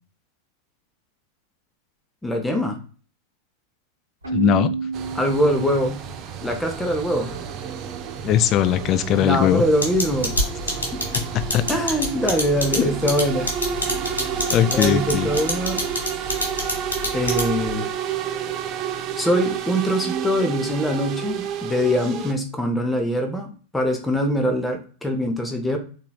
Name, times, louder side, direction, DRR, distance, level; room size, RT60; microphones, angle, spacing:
voice 1, 2.2-2.8 5.1-6.0 6.4-7.3 9.2-10.3 11.7-13.5 14.7-15.9 17.1-17.9 19.2-25.8, equal, 5° left, 0.7 m, -23 dB
Keyboard (musical), 4.2-6.1, right 5 dB, 80° right, 1.0 m, -29 dB
voice 2, 4.3-4.7 8.2-9.6 11.5-11.6 12.8-12.9 14.5-15.3, left 10 dB, 35° left, 0.3 m, -19 dB
sound 1, 4.9-22.3, right 8 dB, 35° right, 0.4 m, -30 dB
sound 2, 9.8-17.7, left 1 dB, 75° left, 1.3 m, -25 dB
3.8 x 2.8 x 2.3 m
figure-of-eight pair, 90°, 0 cm